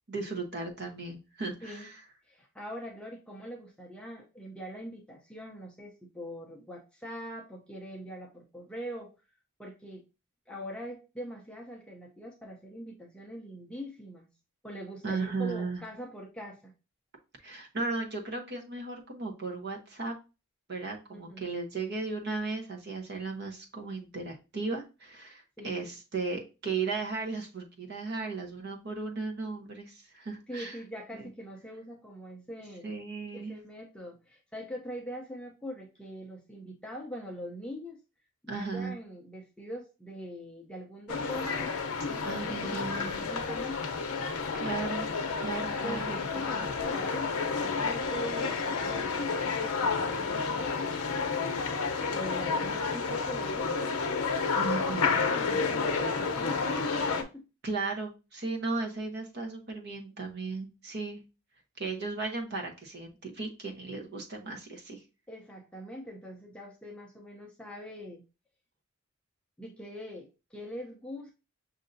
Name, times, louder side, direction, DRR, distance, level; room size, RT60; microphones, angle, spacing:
voice 1, 0.1-1.9 15.0-15.8 17.4-20.2 20.7-30.8 31.1-31.3 32.8-33.6 38.5-38.9 42.2-43.3 44.3-45.1 45.4-46.7 54.5-55.2 57.6-61.2 61.8-65.0, right 3 dB, 50° right, 2 dB, 0.9 m, -36 dB
voice 2, 2.3-9.1 9.6-10.0 10.5-14.3 14.6-16.7 21.1-21.5 25.6-25.9 30.5-32.9 33.3-38.0 38.4-41.7 42.0-44.0 45.8-51.1 52.1-54.0 54.9-57.5 65.3-68.2 69.6-71.3, equal, 5° left, -1 dB, 0.5 m, -43 dB
sound 1, 41.1-57.2, left 4 dB, 80° left, 0.6 m, -30 dB
6.5 x 2.7 x 2.6 m, 0.30 s
head